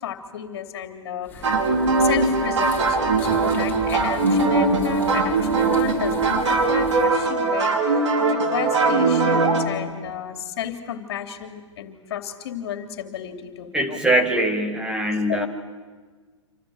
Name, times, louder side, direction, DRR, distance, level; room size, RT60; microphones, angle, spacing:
voice 1, 0.0-1.4 2.0-14.0 15.3-15.5, left 10 dB, 55° left, 7 dB, 2.9 m, -32 dB
sound 1, 1.2-7.2, left 4 dB, 10° left, 4.3 m, -38 dB
sound 2, 1.4-9.6, right 3 dB, 65° right, 5.0 m, -20 dB
voice 2, 13.7-15.5, right 1 dB, 5° right, 5 dB, 2.1 m, -22 dB
27.5 x 27.0 x 7.8 m, 1.4 s
figure-of-eight pair, 120°, 16 cm